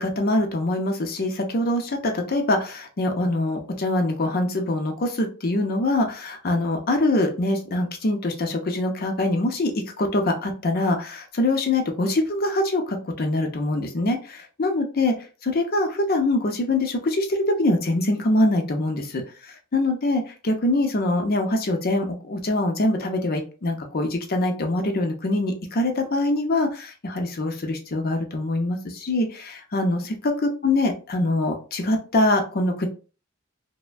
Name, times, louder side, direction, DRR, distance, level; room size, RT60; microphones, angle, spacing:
voice 1, 0.0-15.1 15.4-32.9, left 2 dB, 50° left, 4 dB, 0.6 m, -24 dB
3.2 x 2.1 x 2.4 m, 0.34 s
head